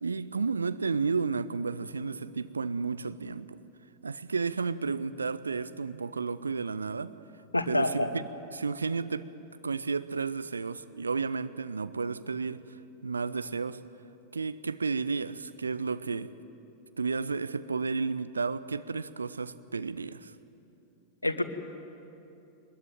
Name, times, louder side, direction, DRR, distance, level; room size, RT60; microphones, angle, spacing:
voice 1, 0.0-3.6 4.0-7.1 7.7-8.3 8.5-12.6 13.0-13.8 14.3-16.3 17.0-20.3, right 4 dB, 75° right, 0.7 m, -32 dB
voice 2, 7.5-8.1 21.2-21.4, left 1 dB, 85° left, 1.3 m, -27 dB
22.5 x 21.0 x 9.2 m
figure-of-eight pair, 90°, 0 cm